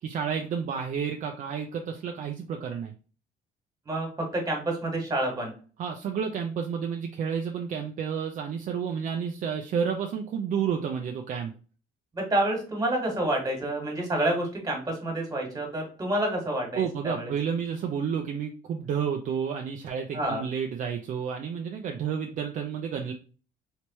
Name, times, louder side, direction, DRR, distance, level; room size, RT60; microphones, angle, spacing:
voice 1, 0.0-2.9 5.8-11.5 16.8-23.1, right 7 dB, 50° right, 4 dB, 0.5 m, -30 dB
voice 2, 3.9-5.5 12.1-17.3 20.1-20.4, right 1 dB, 20° right, 0 dB, 1.6 m, -28 dB
3.3 x 3.0 x 3.0 m, 0.38 s
cardioid pair, 110°, 17 cm